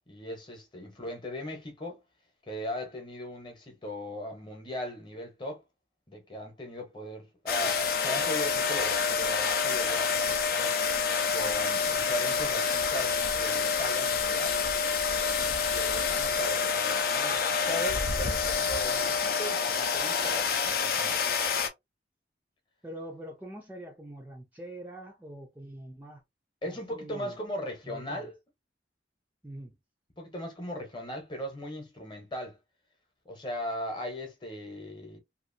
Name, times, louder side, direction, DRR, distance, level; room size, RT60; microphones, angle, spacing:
voice 1, 0.1-2.0 2.5-5.6 6.1-10.8 11.3-14.6 15.7-21.3 26.6-28.3 30.2-32.6 33.2-35.2, left 1 dB, 25° left, 0.9 m, -38 dB
sound 1, 7.5-21.7, left 5 dB, 50° left, 0.5 m, -27 dB
voice 2, 22.8-26.2 26.6-27.4 27.8-28.3 29.4-29.8, right 1 dB, 10° right, 0.4 m, -44 dB
2.8 x 2.5 x 2.6 m
head